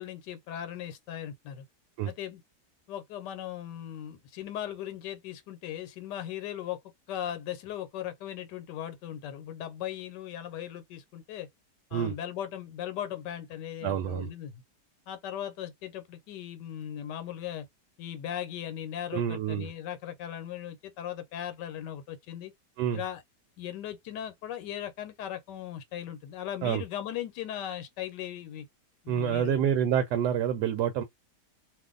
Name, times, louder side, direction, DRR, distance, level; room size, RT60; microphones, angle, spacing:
voice 1, 0.0-1.6 2.1-2.4 2.9-6.8 7.1-11.5 11.9-14.6 15.1-17.7 18.0-22.5 22.9-23.2 23.6-28.7 29.0-29.6, left 10 dB, 85° left, 1.3 m, -38 dB
voice 2, 13.8-14.3 19.1-19.7 22.8-23.0 26.6-26.8 29.1-31.0, right 9 dB, 80° right, 1.1 m, -27 dB
2.5 x 2.5 x 3.7 m
omnidirectional pair, 1.8 m